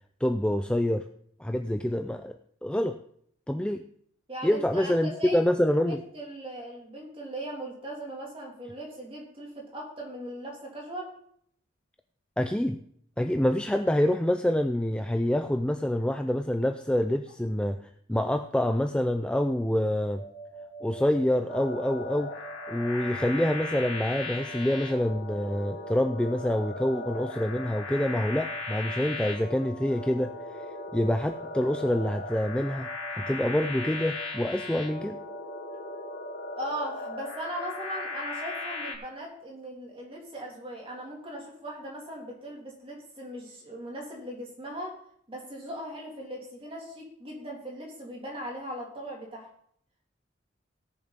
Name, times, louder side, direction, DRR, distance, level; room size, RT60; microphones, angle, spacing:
voice 1, 0.2-1.0 1.4-2.4 2.6-3.0 3.5-3.8 4.4-6.0 12.4-12.8 13.2-17.8 18.1-20.2 20.8-22.3 22.7-30.3 30.6-35.2, left 1 dB, 5° left, 6 dB, 0.4 m, -26 dB
voice 2, 4.3-5.4 5.9-11.1 36.6-45.0 45.3-49.5, right 1 dB, 25° right, -2 dB, 3.1 m, -39 dB
sound 1, 20.1-38.8, right 3 dB, 25° left, 2.0 m, -45 dB
sound 2, 21.5-39.0, left 3 dB, 80° left, 2.5 m, -38 dB
17.0 x 7.0 x 4.0 m, 0.65 s
head